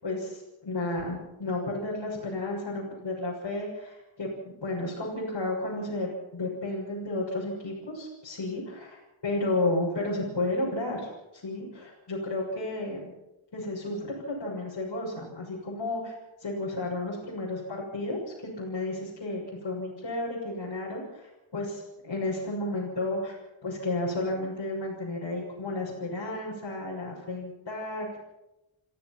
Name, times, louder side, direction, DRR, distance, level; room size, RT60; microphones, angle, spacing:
voice 1, 0.0-11.1 11.4-13.1 13.5-16.1 16.4-23.4 23.6-28.2, left 2 dB, 55° left, -6 dB, 6.8 m, -32 dB
27.5 x 15.5 x 6.1 m, 0.94 s
wide cardioid pair, 110°, 49 cm